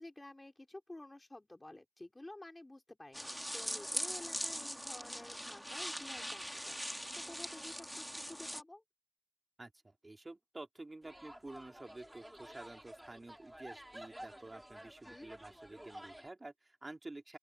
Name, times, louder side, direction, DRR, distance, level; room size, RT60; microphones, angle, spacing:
voice 1, 0.0-8.8 15.0-15.3, left 1 dB, 55° left, 3.6 m, -52 dB
sound 1, 3.1-8.6, equal, ahead, 1.9 m, -41 dB
voice 2, 9.6-17.4, right 2 dB, 80° right, 2.6 m, -50 dB
sound 2, 11.0-16.3, right 1 dB, 20° right, 2.5 m, -52 dB
open air
wide cardioid pair, 45°, 0 cm